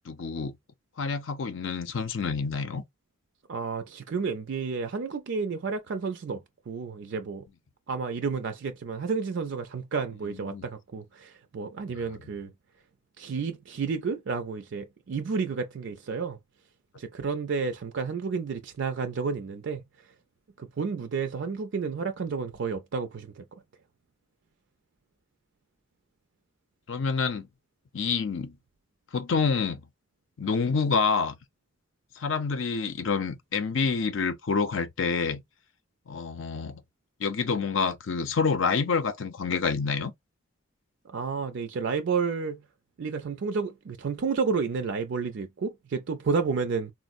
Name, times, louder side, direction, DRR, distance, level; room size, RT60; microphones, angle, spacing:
voice 1, 0.1-0.6 1.0-2.8 10.3-10.7 26.9-27.5 27.9-28.6 29.1-29.8 30.4-31.4 32.2-35.4 36.1-36.8 37.2-40.1, left 5 dB, 70° left, 0.6 m, -27 dB
voice 2, 3.5-7.5 7.9-12.5 13.2-16.4 17.0-19.8 20.6-23.4 41.1-42.6 43.0-46.9, right 5 dB, 65° right, 0.4 m, -31 dB
4.1 x 2.0 x 2.5 m
head